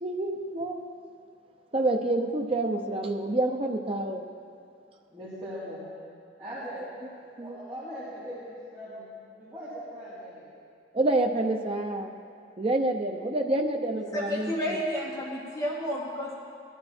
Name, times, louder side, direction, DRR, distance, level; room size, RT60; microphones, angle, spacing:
voice 1, 0.0-0.8 1.7-4.3 7.4-7.6 10.9-12.1 12.6-14.8, right 2 dB, 30° right, 2 dB, 0.8 m, -28 dB
voice 2, 5.1-5.8 6.4-6.9 7.4-10.5, equal, 15° right, -15 dB, 3.6 m, -40 dB
voice 3, 14.1-16.3, equal, 20° left, -8 dB, 3.5 m, -31 dB
18.5 x 12.0 x 4.4 m, 2.3 s
head